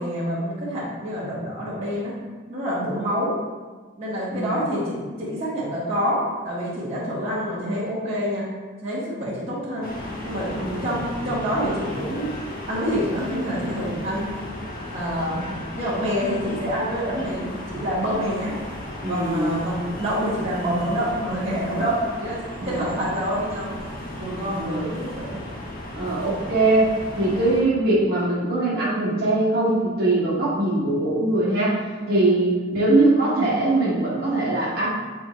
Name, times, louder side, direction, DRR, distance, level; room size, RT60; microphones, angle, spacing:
voice 1, 0.0-2.1 2.5-3.4 4.0-8.5 8.8-9.9 10.2-10.5 10.8-12.3 12.7-14.3 14.9-15.5 15.7-18.5 19.0-23.7 24.2-25.4 32.0-32.2, equal, 35° right, -9 dB, 1.4 m, -27 dB
sound 1, 9.8-27.6, left 1 dB, 45° left, 1.2 m, -35 dB
voice 2, 19.0-19.5 22.6-22.9 24.4-24.9 25.9-34.9, right 2 dB, 55° right, -6 dB, 1.6 m, -22 dB
8.2 x 3.6 x 3.2 m, 1.4 s
head